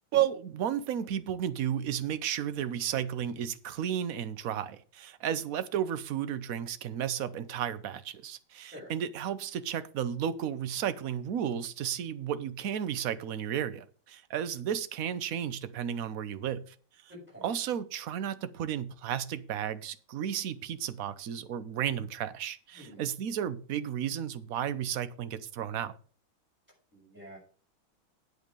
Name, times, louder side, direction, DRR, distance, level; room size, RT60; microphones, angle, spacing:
voice 1, 0.1-16.7 17.4-26.0, right 9 dB, 60° right, 1.0 m, -33 dB
voice 2, 17.1-17.5 22.8-23.1 26.9-27.4, equal, 5° right, 6.6 m, -48 dB
8.9 x 8.2 x 5.3 m
omnidirectional pair, 2.2 m